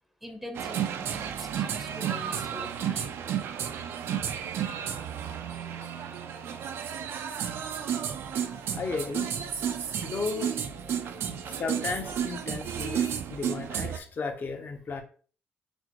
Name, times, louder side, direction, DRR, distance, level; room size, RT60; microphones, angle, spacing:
voice 1, 0.2-3.1, equal, ahead, 5 dB, 0.6 m, -43 dB
sound 1, 0.5-14.0, right 8 dB, 70° right, 0.4 m, -32 dB
sound 2, 4.5-12.6, left 2 dB, 85° left, 1.5 m, -52 dB
voice 2, 8.7-9.3 10.0-10.6 11.6-15.0, left 4 dB, 45° left, 4 dB, 0.7 m, -34 dB
6.0 x 2.0 x 2.9 m, 0.41 s
cardioid pair, 85°, 4 cm